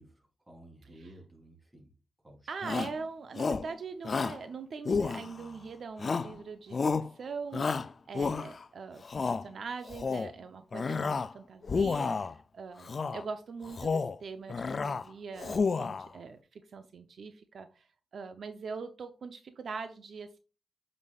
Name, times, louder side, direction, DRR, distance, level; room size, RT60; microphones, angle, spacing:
voice 1, 0.0-1.9 2.2-2.9, right 1 dB, 15° right, 0 dB, 3.4 m, -54 dB
voice 2, 2.5-17.9 18.1-20.4, right 5 dB, 70° right, 8 dB, 0.7 m, -42 dB
Shout, 2.6-3.0 3.4-3.7 4.0-4.4 4.9-5.5 6.0-6.4 6.7-7.1 7.5-8.6 9.0-9.4 9.9-10.3 10.7-11.3 11.6-12.3 12.9-13.2 13.7-14.2 14.5-15.0 15.4-16.1, left 4 dB, 50° left, 0.4 m, -31 dB
8.2 x 5.4 x 2.4 m, 0.33 s
cardioid pair, 65°, 0 cm